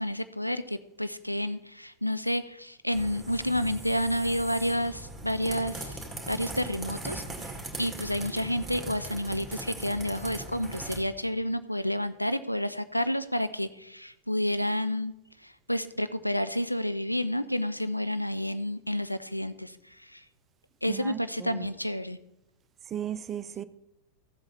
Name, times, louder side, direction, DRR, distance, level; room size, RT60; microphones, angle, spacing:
voice 1, 0.0-6.0 6.3-7.5 7.8-15.1 15.4-20.2 20.8-22.2, equal, 90° left, 0.4 m, -30 dB
sound 1, 2.9-11.0, right 2 dB, 5° right, 2.3 m, -40 dB
voice 2, 20.8-21.7 22.9-23.6, right 9 dB, 25° right, 0.5 m, -36 dB
14.5 x 7.8 x 4.2 m
figure-of-eight pair, 90°, 0 cm